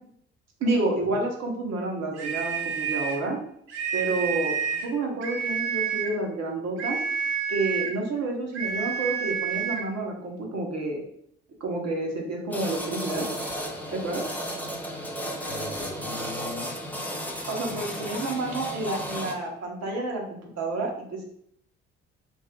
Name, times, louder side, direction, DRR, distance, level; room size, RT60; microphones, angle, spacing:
voice 1, 0.6-3.4 3.9-7.0 7.5-11.0 11.6-13.3 13.9-14.2 17.5-21.3, right 2 dB, 50° right, 0 dB, 1.1 m, -29 dB
sound 1, 2.2-3.3 3.7-4.9 5.2-6.2 6.8-8.0 8.5-9.9, right 7 dB, 85° right, 0.6 m, -29 dB
sound 2, 12.5-19.3, equal, 5° left, 0.7 m, -34 dB
voice 2, 15.5-16.7 17.7-18.1, left 2 dB, 85° left, 2 dB, 0.7 m, -40 dB
2.6 x 2.3 x 3.6 m, 0.67 s
hypercardioid pair, 50°, 33 cm